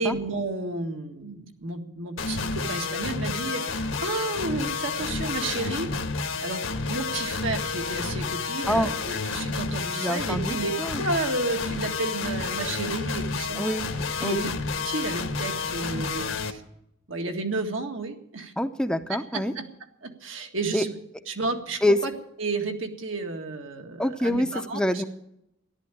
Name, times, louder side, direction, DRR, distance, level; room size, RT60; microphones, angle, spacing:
voice 1, 0.0-5.9 6.4-13.6 14.2-16.6 17.1-18.5 19.1-19.7 20.0-21.0 21.3-22.1 22.4-25.0, right 3 dB, 80° right, 4 dB, 2.0 m, -32 dB
sound 1, 2.2-16.5, left 4 dB, 75° left, 1.4 m, -30 dB
voice 2, 10.0-11.1 13.6-13.9 14.2-14.5 18.6-19.5 20.7-20.8 21.8-22.0 24.0-25.0, left 1 dB, 5° left, 8 dB, 0.6 m, -26 dB
14.0 x 11.5 x 8.4 m, 0.81 s
head